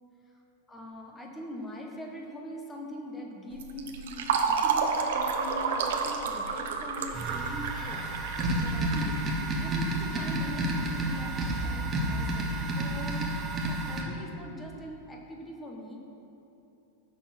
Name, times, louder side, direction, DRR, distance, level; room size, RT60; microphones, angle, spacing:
voice 1, 0.7-8.0 8.6-9.2 9.5-13.3 13.6-16.0, left 1 dB, 10° left, 0 dB, 1.1 m, -42 dB
Fill (with liquid), 3.5-9.9, right 5 dB, 75° right, 1.0 m, -30 dB
sound 1, 7.1-14.0, right 1 dB, 15° right, 1.1 m, -30 dB
15.5 x 6.4 x 4.2 m, 2.9 s
supercardioid pair, 170°, 0 cm